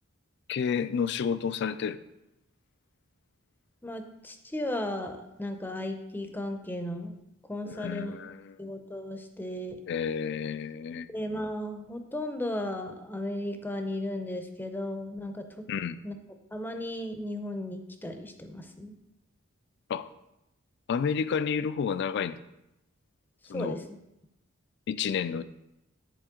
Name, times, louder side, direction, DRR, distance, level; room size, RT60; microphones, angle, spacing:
voice 1, 0.5-2.0 7.7-8.5 9.9-11.1 15.7-16.0 19.9-20.1 20.9-22.4 23.5-23.8 24.9-25.4, left 6 dB, 55° left, 14 dB, 0.3 m, -30 dB
voice 2, 3.8-7.1 7.5-8.1 8.6-9.8 11.1-15.4 16.0-16.1 16.5-18.9 23.5-23.8, left 1 dB, 10° left, 6 dB, 0.6 m, -35 dB
10.0 x 4.2 x 3.7 m, 0.88 s
head